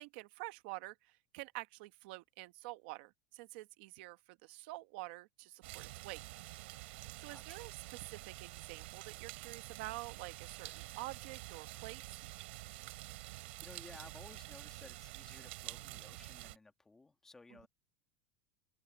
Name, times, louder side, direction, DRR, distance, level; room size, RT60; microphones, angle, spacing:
voice 1, 0.0-6.2 7.2-12.1, right 20 dB, 55° right, 1.2 m, -48 dB
sound 1, 5.6-16.6, right 20 dB, 70° right, 3.8 m, -48 dB
voice 2, 7.2-7.7 13.0-17.7, left 3 dB, 5° left, 1.6 m, -58 dB
supercardioid pair, 175°, 6 cm